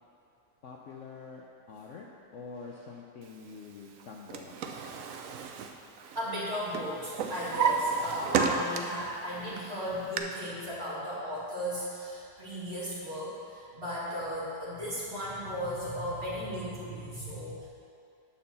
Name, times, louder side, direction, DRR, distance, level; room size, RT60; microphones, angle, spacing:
voice 1, 0.6-4.8 9.1-10.2, left 4 dB, 65° left, -1 dB, 0.7 m, -47 dB
Drawer open or close, 4.0-6.4 6.7-9.1 9.5-10.2, right 6 dB, 65° right, 0.8 m, -32 dB
voice 2, 6.2-17.7, equal, 35° right, -8 dB, 2.1 m, -36 dB
9.3 x 4.4 x 6.8 m, 2.5 s
omnidirectional pair, 1.9 m